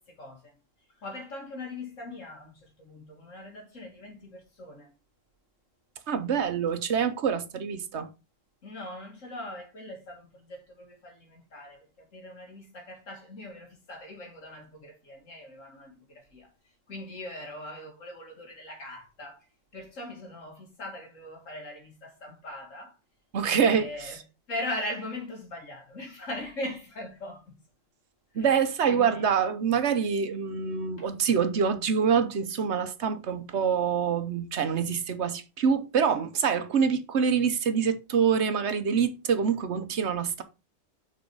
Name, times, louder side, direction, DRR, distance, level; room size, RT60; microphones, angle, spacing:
voice 1, 0.1-0.6 1.0-4.9 8.6-16.5 16.9-19.5 19.7-23.0 23.4-24.2 24.5-27.6 28.3-28.5 28.9-29.3 31.0-31.1, left 1 dB, 80° left, 2.5 m, -40 dB
voice 2, 6.1-8.1 23.3-24.1 28.3-40.4, right 6 dB, 65° right, 1.1 m, -26 dB
6.4 x 4.7 x 4.6 m
omnidirectional pair, 1.3 m